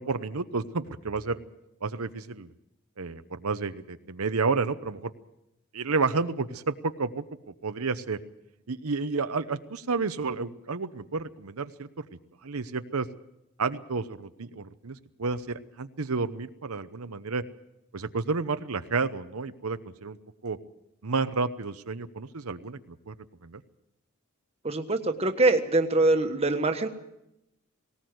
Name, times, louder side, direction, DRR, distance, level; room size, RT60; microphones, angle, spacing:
voice 1, 0.0-1.4 1.8-2.5 3.0-5.1 5.7-7.2 7.6-8.2 8.7-11.9 12.4-13.1 13.6-17.4 17.9-20.2 20.4-20.6 21.0-23.1 23.4-23.6, right 4 dB, 80° right, 11 dB, 0.9 m, -31 dB
voice 2, 24.6-26.9, right 2 dB, 30° right, 7 dB, 1.4 m, -24 dB
19.0 x 19.0 x 7.9 m, 0.87 s
head